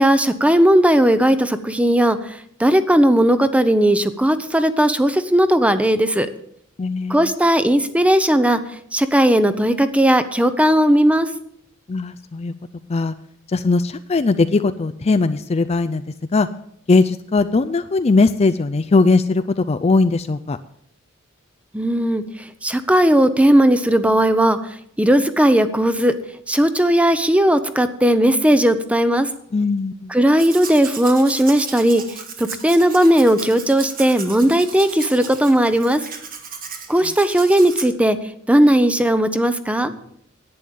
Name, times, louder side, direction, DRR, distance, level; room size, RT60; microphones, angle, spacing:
voice 1, 0.0-6.3 7.1-8.6 8.9-11.3 21.7-22.2 22.6-24.6 25.0-26.1 26.5-29.3 30.1-32.0 32.4-36.0 36.9-38.2 38.5-39.9, right 1 dB, 5° right, 11 dB, 0.8 m, -16 dB
voice 2, 6.8-7.3 11.9-12.5 12.9-13.1 13.5-16.0 16.3-16.5 16.9-20.6 29.5-30.1, left 3 dB, 30° left, 10 dB, 0.4 m, -19 dB
Domestic sounds home sounds, 30.3-37.9, right 6 dB, 45° right, 1.8 m, -35 dB
11.0 x 9.0 x 7.0 m, 0.68 s
head